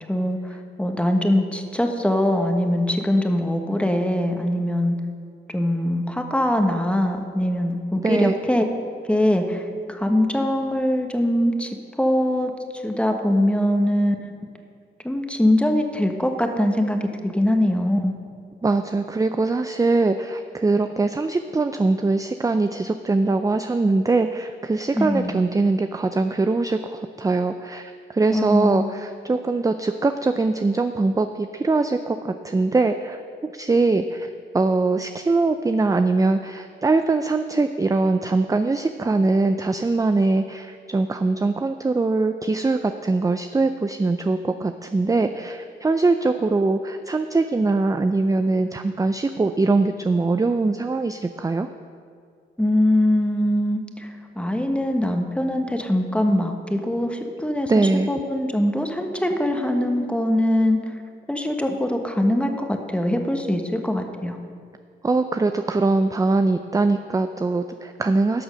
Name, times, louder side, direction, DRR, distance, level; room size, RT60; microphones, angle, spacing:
voice 1, 0.1-4.9 5.5-8.7 9.1-11.7 12.0-12.5 12.8-14.1 15.0-18.2 24.9-25.4 28.3-28.9 52.6-60.8 61.3-64.4, left 1 dB, 5° left, 4 dB, 1.3 m, -22 dB
voice 2, 8.0-8.4 18.6-51.7 57.7-58.1 65.0-68.4, right 3 dB, 15° right, 8 dB, 0.4 m, -22 dB
12.0 x 6.2 x 6.3 m, 2.2 s
cardioid pair, 60°, 21 cm